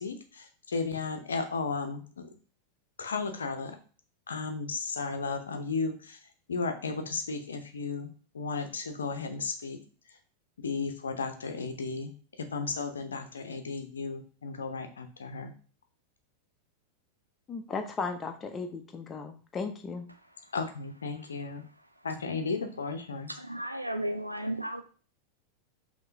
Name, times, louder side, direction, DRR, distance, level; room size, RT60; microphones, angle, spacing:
voice 1, 0.0-2.3 3.0-3.8 4.3-6.2 6.5-8.1 8.3-9.8 10.6-12.1 12.5-15.5 20.5-21.6 22.0-23.3, left 4 dB, 70° left, 7 dB, 0.7 m, -34 dB
voice 2, 17.5-20.1, left 4 dB, 20° left, 6 dB, 0.7 m, -36 dB
voice 3, 23.4-24.8, right 1 dB, 85° right, 7 dB, 0.5 m, -34 dB
5.5 x 2.9 x 2.7 m, 0.39 s
figure-of-eight pair, 90°, 0 cm